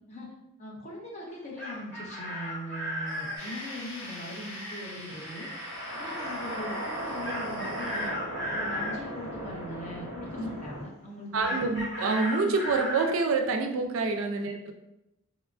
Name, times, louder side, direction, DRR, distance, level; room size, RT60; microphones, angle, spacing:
voice 1, 0.6-5.5 5.9-8.1 8.5-11.6, equal, 30° left, -2 dB, 0.5 m, -40 dB
Chicken rooster, 1.3-3.4 7.2-9.0 11.4-13.2, left 1 dB, 5° left, 1.1 m, -34 dB
sound 1, 3.0-8.1, equal, 25° right, 1.1 m, -46 dB
sound 2, 3.4-10.8, equal, 65° left, 1.3 m, -38 dB
voice 2, 11.3-14.7, right 4 dB, 65° right, 5 dB, 0.3 m, -27 dB
2.9 x 2.3 x 2.3 m, 0.89 s
head